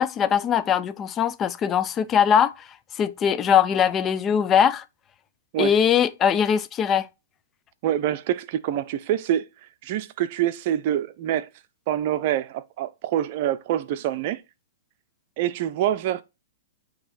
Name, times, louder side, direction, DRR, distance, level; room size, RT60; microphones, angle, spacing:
voice 1, 0.0-2.7 3.0-4.8 5.6-7.1, left 8 dB, 25° left, 0.4 m, -21 dB
voice 2, 7.8-9.5 9.8-11.5 11.9-14.4 15.4-16.2, right 11 dB, 50° right, 0.6 m, -25 dB
8.8 x 3.0 x 4.1 m
hypercardioid pair, 125°, 0 cm